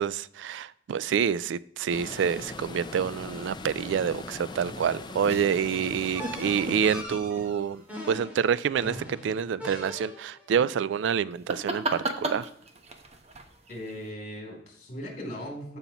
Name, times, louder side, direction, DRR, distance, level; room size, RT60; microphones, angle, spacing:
voice 1, 0.0-7.8 8.1-12.5, right 7 dB, 70° right, 0.3 m, -27 dB
sound 1, 1.9-7.0, left 2 dB, 25° left, 0.6 m, -40 dB
sound 2, 4.1-8.1 11.3-14.1, right 2 dB, 35° right, 1.0 m, -37 dB
sound 3, 6.2-10.4, equal, 10° right, 2.1 m, -41 dB
voice 2, 13.7-15.8, equal, 40° left, 3.3 m, -38 dB
14.0 x 5.5 x 3.0 m
head